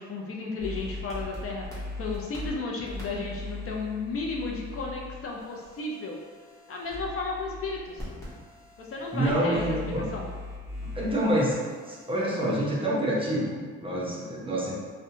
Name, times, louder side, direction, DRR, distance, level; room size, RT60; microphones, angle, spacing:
voice 1, 0.0-6.2 6.7-8.1 8.8-10.3, left 3 dB, 50° left, -1 dB, 0.5 m, -34 dB
sound 1, 0.6-12.5, left 2 dB, 10° left, 0.9 m, -40 dB
voice 2, 9.1-10.0 10.8-11.6 11.9-14.7, right 1 dB, 20° right, -5 dB, 0.7 m, -27 dB
2.6 x 2.1 x 2.7 m, 1.5 s
cardioid pair, 90°, 30 cm